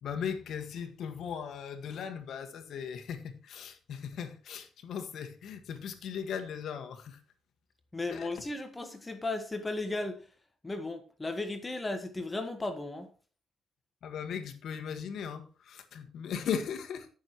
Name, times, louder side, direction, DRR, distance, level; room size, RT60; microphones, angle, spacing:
voice 1, 0.0-7.2 8.1-8.3 14.0-17.1, left 7 dB, 70° left, 1.6 m, -38 dB
voice 2, 7.9-10.3 10.6-13.1, left 2 dB, 20° left, 1.4 m, -35 dB
15.0 x 6.5 x 3.0 m
cardioid pair, 90°, 0 cm